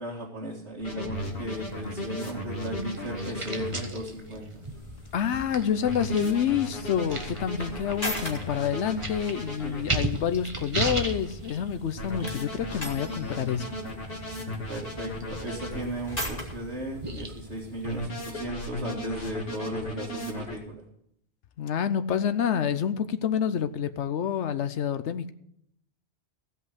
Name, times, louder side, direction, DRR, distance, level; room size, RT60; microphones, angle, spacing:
voice 1, 0.0-4.5 9.6-9.8 14.7-20.8, right 1 dB, 80° right, -5 dB, 2.2 m, -36 dB
sound 1, 0.8-3.8 5.8-9.8 12.0-15.8 17.8-20.6, left 1 dB, 55° left, 2.4 m, -36 dB
sound 2, 1.1-18.1, right 2 dB, 30° right, 1.3 m, -38 dB
sound 3, 4.6-20.1, left 1 dB, 35° left, 2.7 m, -43 dB
voice 2, 5.1-13.7 21.6-25.3, left 8 dB, 90° left, 11 dB, 1.1 m, -28 dB
16.5 x 5.5 x 8.1 m, 0.73 s
omnidirectional pair, 1.1 m